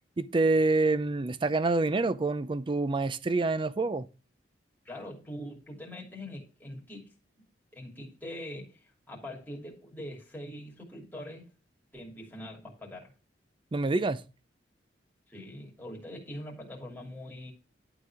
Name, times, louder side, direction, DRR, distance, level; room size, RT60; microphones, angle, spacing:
voice 1, 0.2-4.1 13.7-14.2, right 3 dB, 25° right, 0.4 m, -27 dB
voice 2, 4.8-7.1 7.7-8.8 9.1-11.5 11.9-13.1 15.3-17.5, left 1 dB, 10° left, 2.8 m, -43 dB
11.5 x 4.0 x 4.8 m
head